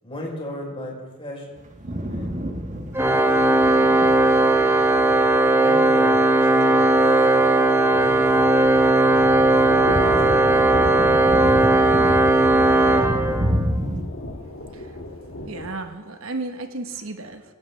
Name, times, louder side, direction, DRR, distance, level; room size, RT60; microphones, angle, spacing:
voice 1, 0.0-1.7 2.0-2.4 5.5-6.9 7.3-8.2 9.3-10.1, left 1 dB, 25° left, -2 dB, 3.9 m, -37 dB
sound 1, 1.6-14.0, equal, 35° right, 1.2 m, -31 dB
Organ, 3.0-13.8, right 2 dB, 10° right, 0.8 m, -17 dB
Thunder / Rain, 8.4-15.7, left 1 dB, 65° left, 1.4 m, -33 dB
voice 2, 15.5-17.4, right 2 dB, 75° right, 6 dB, 1.2 m, -33 dB
23.0 x 10.5 x 3.4 m, 1.3 s
head